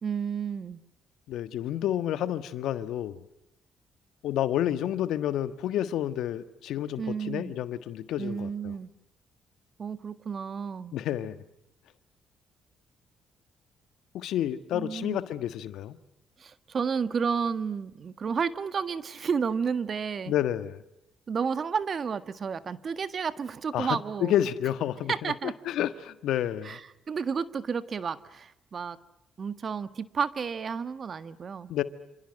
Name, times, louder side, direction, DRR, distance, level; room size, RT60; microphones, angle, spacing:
voice 1, 0.0-0.8 7.0-7.5 8.2-8.9 9.8-10.9 14.7-15.2 16.4-20.3 21.3-24.3 25.1-25.5 26.6-29.0 29.4-31.7, right 6 dB, 50° right, 13 dB, 1.6 m, -31 dB
voice 2, 1.3-3.2 4.2-8.7 10.9-11.4 14.1-16.0 20.3-20.8 23.7-25.3 25.6-26.8 31.7-31.8, left 11 dB, 75° left, 12 dB, 1.5 m, -30 dB
28.0 x 27.5 x 6.5 m, 0.85 s
supercardioid pair, 55°, 0 cm